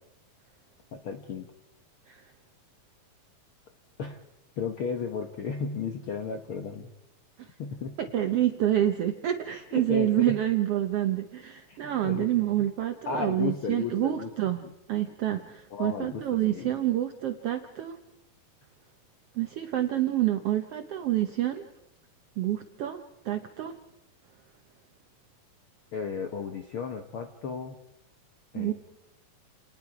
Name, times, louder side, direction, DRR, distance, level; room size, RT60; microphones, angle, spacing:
voice 1, 0.9-1.5 4.0-4.2 4.6-6.9 7.6-8.0 9.7-10.4 11.7-12.7 13.1-14.7 15.7-16.7 25.9-27.8 28.5-28.7, left 6 dB, 65° left, 6 dB, 1.3 m, -34 dB
voice 2, 8.0-14.6 14.9-18.0 19.3-21.6 22.4-23.8 28.5-28.7, right 12 dB, 75° right, 7 dB, 1.4 m, -28 dB
29.5 x 19.5 x 4.8 m, 0.89 s
omnidirectional pair, 3.7 m